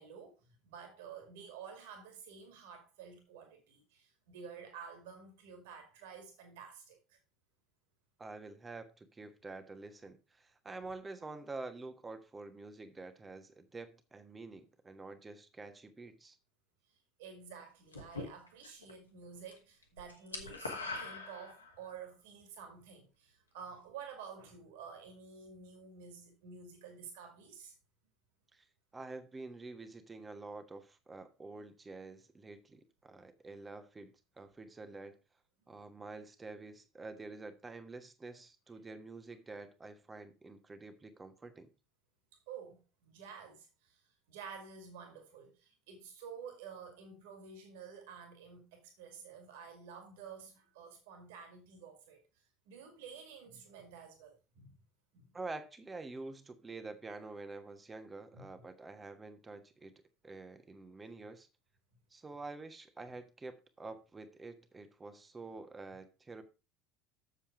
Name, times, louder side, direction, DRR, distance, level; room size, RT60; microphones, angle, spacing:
voice 1, 0.0-7.2 16.9-27.7 42.5-54.7 55.1-55.3 58.3-58.5, right 6 dB, 60° right, 2.0 m, -51 dB
voice 2, 8.2-16.4 28.5-28.7 28.9-35.2 35.7-41.7 55.3-61.5 62.1-66.4, right 3 dB, 20° right, 1.3 m, -48 dB
sound 1, 17.9-18.9 19.2-19.6 19.8-21.9, left 3 dB, 80° left, 1.5 m, -42 dB
7.4 x 7.2 x 4.7 m
figure-of-eight pair, 65°, 0 cm